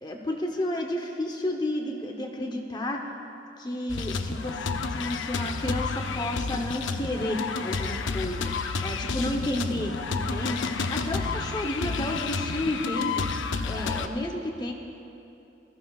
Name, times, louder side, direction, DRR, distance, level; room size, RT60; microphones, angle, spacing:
voice 1, 0.0-3.0 3.6-4.6 4.9-8.5 8.8-13.2 13.6-14.7, left 1 dB, 20° left, 2 dB, 0.9 m, -31 dB
sound 1, 3.9-14.1, left 4 dB, 75° left, 0.6 m, -30 dB
21.0 x 14.5 x 2.4 m, 2.8 s
head